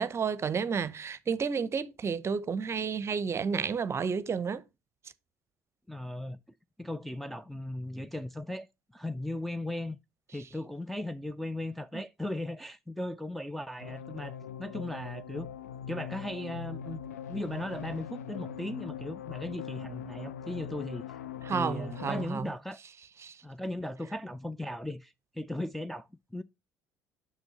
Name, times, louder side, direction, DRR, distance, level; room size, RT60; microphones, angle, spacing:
voice 1, 0.0-4.6 11.9-12.0 21.4-22.5 23.2-23.4, right 6 dB, 30° right, 0.7 m, -31 dB
voice 2, 5.9-6.4 6.8-8.7 8.9-10.0 10.3-15.5 15.9-17.0 17.3-21.2 21.5-22.8 23.4-26.4, left 1 dB, ahead, 0.4 m, -37 dB
sound 1, 13.8-22.3, left 8 dB, 75° left, 0.4 m, -41 dB
8.0 x 6.2 x 2.8 m
figure-of-eight pair, 55°, 9 cm